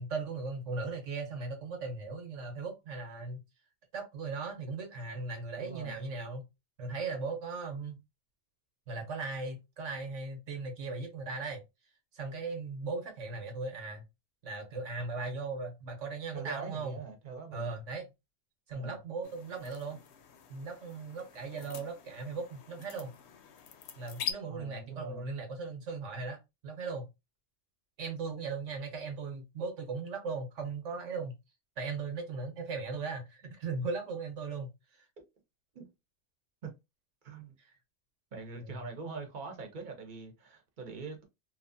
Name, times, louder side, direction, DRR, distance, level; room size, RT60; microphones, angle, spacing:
voice 1, 0.0-3.4 3.9-6.4 6.8-8.0 8.9-11.6 12.1-14.0 14.4-17.0 17.5-18.1 18.7-20.0 20.5-23.1 24.0-26.4 26.6-27.1 28.0-31.4 31.8-34.7 35.0-35.1 37.6-37.8 38.6-38.9, right 4 dB, 85° right, 1.3 m, -38 dB
voice 2, 5.6-6.0 16.3-17.7 18.7-19.0 24.5-25.3 35.7-35.9 36.6-36.7 37.2-37.5 38.3-41.2, right 4 dB, 45° right, 0.9 m, -43 dB
sound 1, 19.2-24.3, left 9 dB, 70° left, 0.8 m, -44 dB
2.9 x 2.4 x 2.6 m
omnidirectional pair, 1.2 m